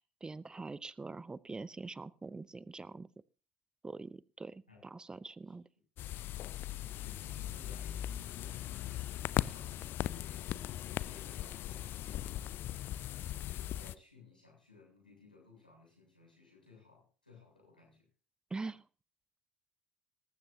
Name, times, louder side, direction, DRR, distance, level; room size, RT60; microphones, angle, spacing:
voice 1, 0.0-3.1 3.8-5.6 18.5-18.8, right 3 dB, 15° right, 21 dB, 0.6 m, -44 dB
sound 1, 6.0-13.9, left 13 dB, 50° left, 0.5 m, -39 dB
voice 2, 7.0-12.6 13.4-18.1, left 4 dB, 90° left, -2 dB, 7.4 m, -60 dB
19.0 x 14.5 x 2.8 m, 0.37 s
figure-of-eight pair, 60°, 5 cm